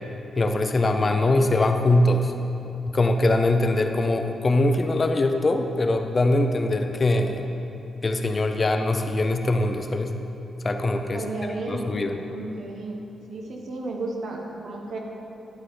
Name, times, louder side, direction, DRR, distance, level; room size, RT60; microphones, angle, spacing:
voice 1, 0.4-2.3 2.9-7.5 8.0-10.2 10.6-11.3 11.7-12.2, left 2 dB, 30° left, 6 dB, 0.5 m, -22 dB
voice 2, 11.1-12.0 12.3-13.0 13.3-15.0, right 2 dB, 65° right, 0 dB, 1.3 m, -33 dB
11.5 x 8.7 x 3.8 m, 2.9 s
wide cardioid pair, 150°, 0 cm